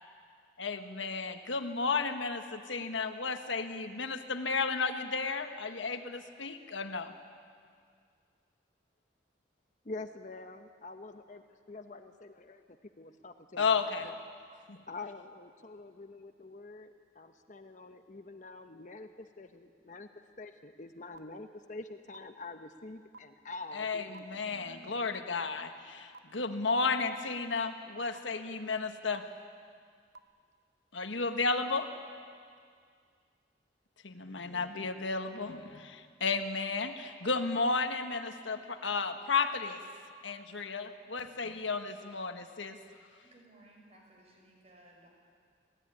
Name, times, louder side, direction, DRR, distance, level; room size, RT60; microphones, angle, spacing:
voice 1, 0.6-7.1 13.6-14.1 14.7-14.8 23.7-29.2 30.9-31.9 34.0-39.8 40.2-42.8, left 4 dB, 85° left, 7 dB, 1.5 m, -33 dB
voice 2, 9.8-14.1 14.9-20.1 20.4-24.2, left 3 dB, 40° left, 7 dB, 0.9 m, -46 dB
sound 1, 21.1-21.2 22.1-22.2 23.1-23.2 24.1-24.2 25.1-25.2 26.1-26.2 27.1-27.2 28.1-28.2 29.1-29.2 30.1-30.2, right 3 dB, 60° right, 0.8 m, -48 dB
voice 3, 43.3-45.1, right 1 dB, 35° right, 0 dB, 5.5 m, -59 dB
25.5 x 17.0 x 9.9 m, 2.1 s
head